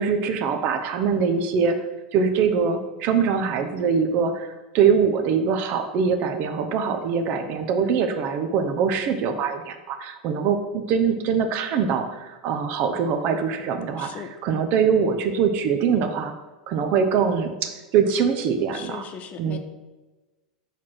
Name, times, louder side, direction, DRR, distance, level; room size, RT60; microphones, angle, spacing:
voice 1, 0.0-1.8 2.1-14.1 14.4-16.3 16.7-19.0 19.4-19.6, right 6 dB, 45° right, 7 dB, 0.7 m, -23 dB
voice 2, 14.0-14.3 18.7-19.6, left 7 dB, 35° left, 7 dB, 0.7 m, -38 dB
4.9 x 4.1 x 5.9 m, 1.2 s
hypercardioid pair, 95°, 4 cm